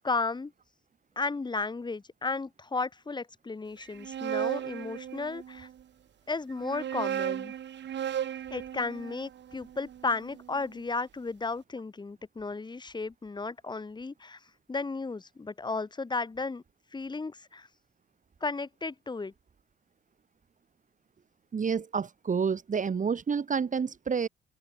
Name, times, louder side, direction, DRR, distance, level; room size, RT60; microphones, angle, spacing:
voice 1, 0.0-0.5 1.2-5.7 6.3-7.5 8.5-14.4 14.7-16.6 16.9-17.7 18.4-19.3, left 3 dB, 20° left, 1.5 m, -34 dB
sound 1, 3.8-5.7 6.5-10.7, right 10 dB, 65° right, 3.4 m, -36 dB
voice 2, 21.5-24.3, right 6 dB, 40° right, 2.9 m, -29 dB
open air
cardioid pair, 90°, 20 cm